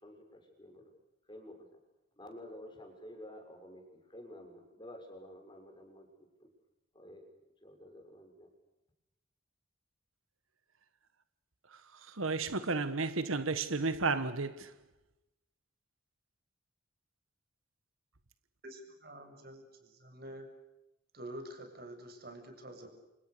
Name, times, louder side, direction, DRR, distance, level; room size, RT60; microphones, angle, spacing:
voice 1, 0.0-0.9 1.3-1.7 2.2-3.8 4.1-6.1 6.9-7.3 7.6-8.5, left 1 dB, 20° left, 6.5 m, -50 dB
voice 2, 11.7-14.7, right 3 dB, 80° right, 1.4 m, -33 dB
voice 3, 18.6-20.5 21.1-22.9, right 1 dB, 45° right, 7.4 m, -47 dB
30.0 x 27.5 x 6.8 m
head